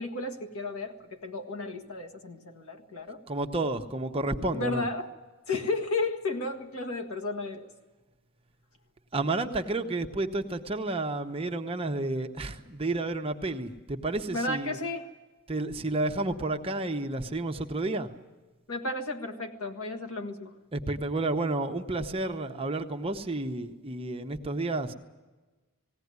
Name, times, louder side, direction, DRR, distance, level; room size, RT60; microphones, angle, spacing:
voice 1, 0.0-3.2 4.5-5.1 5.5-7.7 14.3-15.1 18.7-20.5, left 2 dB, 75° left, 4 dB, 1.7 m, -33 dB
voice 2, 3.3-4.8 9.1-14.8 15.5-18.1 20.7-24.9, right 2 dB, 25° right, 5 dB, 0.9 m, -31 dB
19.0 x 17.0 x 9.5 m, 1.2 s
head